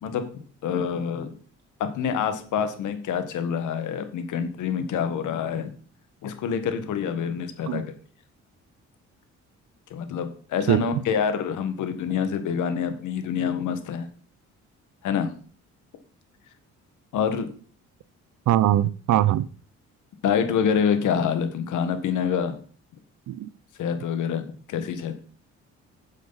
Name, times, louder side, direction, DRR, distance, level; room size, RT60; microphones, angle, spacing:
voice 1, 0.0-1.3 1.8-5.7 6.2-7.8 9.9-14.1 15.0-15.3 17.1-17.5 20.2-22.6 23.8-25.2, left 7 dB, 80° left, 9 dB, 1.6 m, -26 dB
voice 2, 18.5-19.5 23.3-23.5, right 13 dB, 70° right, 20 dB, 0.6 m, -21 dB
9.9 x 7.5 x 4.1 m, 0.42 s
cardioid pair, 90°, 30 cm